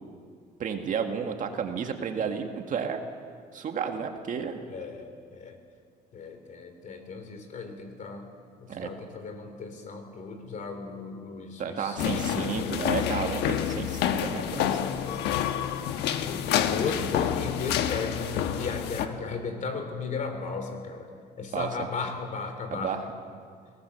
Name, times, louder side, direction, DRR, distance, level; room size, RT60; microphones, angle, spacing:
voice 1, 0.6-3.0 3.5-4.6 8.7-8.9 11.6-14.8 21.5-21.7 22.7-23.0, right 6 dB, 50° right, 5 dB, 1.8 m, -32 dB
voice 2, 4.7-5.6 6.1-8.3 8.6-13.0 14.9-15.3 15.6-15.8 16.2-21.1 21.4-22.9, left 4 dB, 50° left, 6 dB, 3.4 m, -36 dB
sound 1, 12.0-19.1, left 10 dB, 85° left, 1.2 m, -28 dB
22.0 x 18.0 x 6.9 m, 2.2 s
cardioid pair, 110°, 17 cm